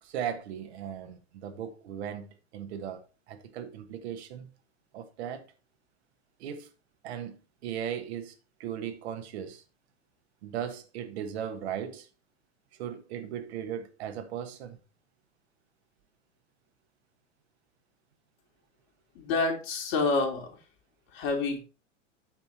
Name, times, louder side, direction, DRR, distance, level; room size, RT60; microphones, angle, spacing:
voice 1, 0.0-2.3 2.5-4.5 4.9-5.5 6.4-6.7 7.0-8.3 8.6-9.6 10.4-12.1 12.7-14.8, right 9 dB, 55° right, 1.5 m, -37 dB
voice 2, 19.1-20.5 21.1-21.6, left 3 dB, 50° left, 3.1 m, -28 dB
8.8 x 4.3 x 5.8 m
figure-of-eight pair, 90°, 38 cm